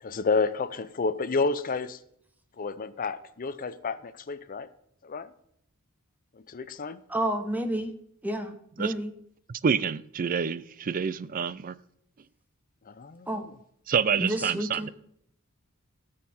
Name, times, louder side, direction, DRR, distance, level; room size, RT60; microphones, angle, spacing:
voice 1, 0.0-2.0 2.6-4.7 5.0-5.3 6.5-7.0 12.9-13.4, left 4 dB, 40° left, 0.5 m, -30 dB
voice 2, 7.1-7.9 8.2-9.1 13.3-13.5 14.2-14.9, right 1 dB, 10° right, 0.9 m, -30 dB
voice 3, 9.5-11.8 13.9-14.9, right 6 dB, 40° right, 0.4 m, -27 dB
17.0 x 6.5 x 4.2 m
head